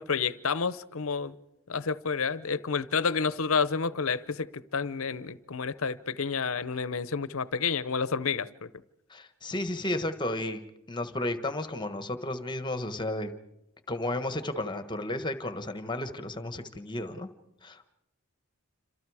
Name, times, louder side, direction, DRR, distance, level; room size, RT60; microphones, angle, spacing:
voice 1, 0.0-1.3 1.7-8.7, left 5 dB, 65° left, 0.8 m, -30 dB
voice 2, 9.1-10.6 10.9-13.3 13.9-17.3 17.6-17.9, left 1 dB, 20° left, 1.3 m, -33 dB
28.0 x 26.5 x 4.9 m
head